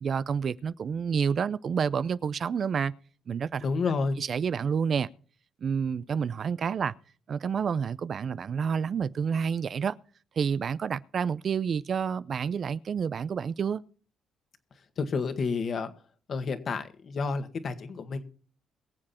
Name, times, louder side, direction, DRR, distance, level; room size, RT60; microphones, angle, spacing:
voice 1, 0.0-2.9 3.3-3.7 4.2-5.1 5.6-6.9 7.3-10.0 10.4-13.8, right 6 dB, 50° right, 0.5 m, -29 dB
voice 2, 3.6-4.2 15.0-15.9 16.3-18.2, left 4 dB, 55° left, 1.8 m, -30 dB
22.5 x 7.6 x 4.3 m
cardioid pair, 90°, 0 cm